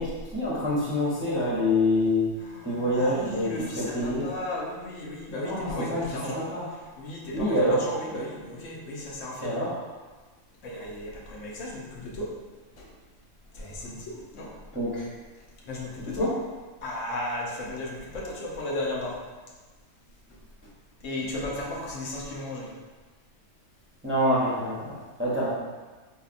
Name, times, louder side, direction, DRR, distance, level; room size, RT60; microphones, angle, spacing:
voice 1, 0.0-2.3 2.6-4.3 5.4-6.7 7.3-7.9 9.4-9.8 14.7-15.0 16.0-16.3 24.0-25.5, left 1 dB, 15° right, -8 dB, 0.5 m, -26 dB
voice 2, 2.4-6.4 7.0-9.6 10.6-12.3 12.8-12.9 13.5-14.5 15.7-16.4 16.8-19.2 20.3-20.4 21.0-22.7, left 1 dB, 70° left, -3 dB, 1.1 m, -35 dB
4.1 x 2.8 x 2.5 m, 1.3 s
omnidirectional pair, 1.4 m